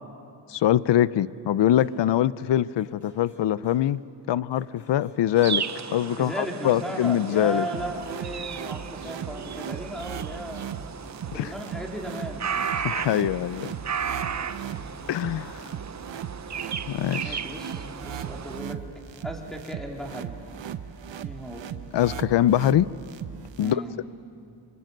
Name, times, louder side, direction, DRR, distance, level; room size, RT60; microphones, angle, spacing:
voice 1, 0.5-4.0 4.3-5.6 5.9-7.7 11.3-11.5 12.8-13.7 15.1-15.7 16.9-17.4 21.9-22.9 23.6-23.8, left 12 dB, 70° left, 19 dB, 0.6 m, -23 dB
sound 1, 1.7-2.0 2.8-3.8 4.5-6.0 6.8-7.8 8.5-10.0 10.8-11.8 12.5-14.1 14.8-16.0 16.5-18.4 18.8-18.9, left 3 dB, 40° left, 5.9 m, -51 dB
sound 2, 5.4-18.6, right 7 dB, 40° right, 0.7 m, -35 dB
voice 2, 6.2-10.7 11.3-12.5 14.0-14.7 17.2-18.8 19.2-20.5 21.2-21.7 23.6-24.0, right 1 dB, ahead, 0 dB, 3.6 m, -36 dB
sound 3, 7.7-23.7, right 8 dB, 80° right, 1.1 m, -38 dB
26.5 x 26.5 x 7.8 m, 2.6 s
wide cardioid pair, 125°, 44 cm